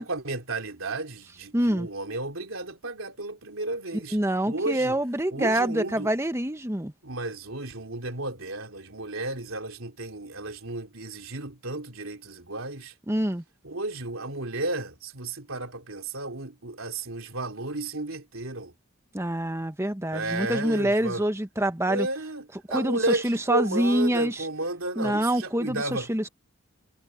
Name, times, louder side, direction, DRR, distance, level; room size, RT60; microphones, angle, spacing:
voice 1, 0.0-4.2 4.4-5.0 5.3-6.1 7.0-12.9 13.6-18.7 20.1-21.3 21.9-26.3, right 2 dB, 75° right, 3.5 m, -33 dB
voice 2, 1.5-1.9 4.1-6.9 13.1-13.4 19.1-22.1 22.7-24.5 25.0-26.3, right 1 dB, 15° right, 1.2 m, -26 dB
head